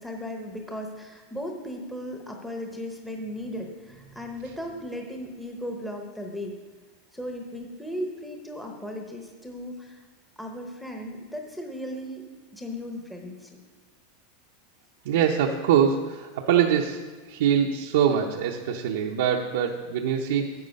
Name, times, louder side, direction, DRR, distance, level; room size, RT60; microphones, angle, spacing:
voice 1, 0.0-6.6 7.1-10.0 10.4-12.2 12.5-13.5, equal, ahead, 1 dB, 0.8 m, -36 dB
voice 2, 15.0-17.0 17.3-20.5, right 8 dB, 75° right, 0 dB, 0.7 m, -23 dB
9.4 x 7.5 x 5.3 m, 1.4 s
supercardioid pair, 155°, 0 cm